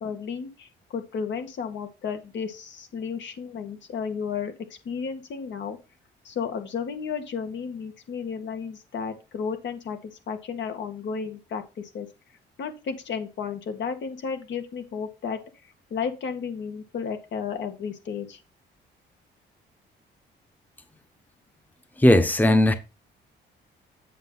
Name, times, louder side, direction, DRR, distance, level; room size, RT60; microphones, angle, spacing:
voice 1, 0.0-4.5 4.9-5.8 6.2-12.1 12.6-15.4 15.9-18.4, left 6 dB, 65° left, 1.9 m, -33 dB
voice 2, 22.0-22.7, left 1 dB, 10° left, 1.0 m, -17 dB
8.0 x 6.5 x 4.0 m
cardioid pair, 90°, 20 cm